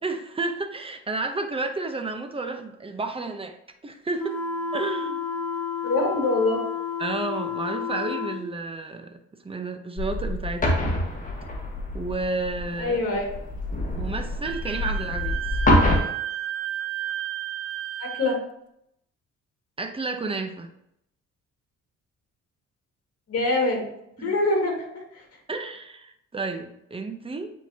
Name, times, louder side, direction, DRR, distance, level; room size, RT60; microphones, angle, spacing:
voice 1, 0.0-3.6 3.8-4.4 4.7-5.2 7.0-10.9 11.9-13.0 13.9-15.4 19.8-20.7 24.2-24.4 25.5-27.5, right 3 dB, 20° right, 6 dB, 0.8 m, -31 dB
sound 1, 4.2-8.4, left 6 dB, 10° left, 1.7 m, -30 dB
voice 2, 5.8-6.6 12.8-13.4 18.0-18.4 23.3-23.9 24.2-24.8, left 2 dB, 55° left, 1 dB, 2.1 m, -24 dB
sound 2, 10.0-16.0, left 1 dB, 25° left, 1.6 m, -26 dB
Wind instrument woodwind instrument, 14.4-18.4, right 11 dB, 50° right, 0.5 m, -32 dB
8.8 x 3.9 x 2.9 m, 0.77 s
cardioid pair, 90°, 30 cm